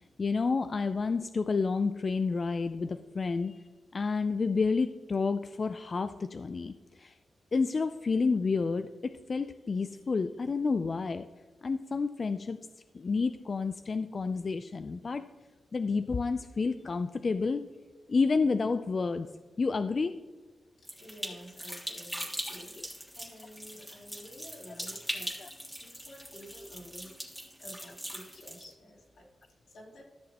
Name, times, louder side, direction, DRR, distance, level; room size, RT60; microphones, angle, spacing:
voice 1, 0.2-3.6 3.9-7.1 7.5-11.2 11.6-12.6 12.9-15.2 15.7-17.6 18.1-19.3 19.6-20.1 22.8-22.9 25.4-25.5, left 4 dB, 45° left, 9 dB, 0.4 m, -30 dB
voice 2, 20.8-27.2 27.6-30.0, equal, 85° left, -4 dB, 3.2 m, -51 dB
sound 1, 20.8-28.7, equal, ahead, 1.6 m, -41 dB
13.5 x 6.4 x 2.9 m, 1.3 s
cardioid pair, 90°, 0 cm